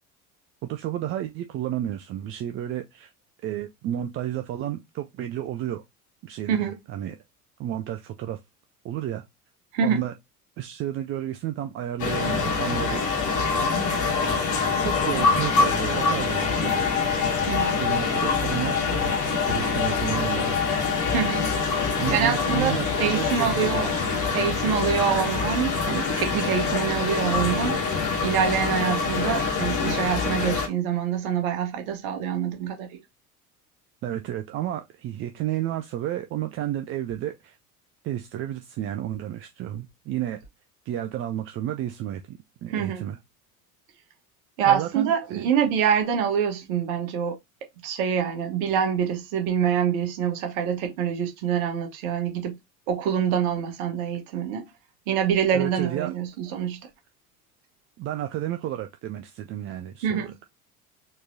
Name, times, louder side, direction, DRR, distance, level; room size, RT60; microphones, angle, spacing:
voice 1, 0.7-3.1 3.4-5.8 6.2-7.2 7.6-8.4 8.8-9.2 9.8-10.1 10.6-13.0 13.9-14.1 14.8-16.9 17.7-19.2 19.5-20.6 22.0-23.9 34.0-37.6 38.0-40.4 40.9-43.2 44.6-45.5 55.5-56.1 58.0-60.5, right 12 dB, 30° right, 0.4 m, -31 dB
voice 2, 6.5-6.8 9.7-10.0 17.4-17.8 21.1-21.5 22.1-23.9 24.3-27.8 28.2-33.0 42.7-43.1 44.6-47.4 47.8-52.6 52.9-54.7 55.1-56.8 60.0-60.4, right 8 dB, 60° right, 1.2 m, -25 dB
sound 1, 12.0-30.7, left 5 dB, 40° left, 1.4 m, -25 dB
4.3 x 3.0 x 2.6 m
figure-of-eight pair, 70°, 46 cm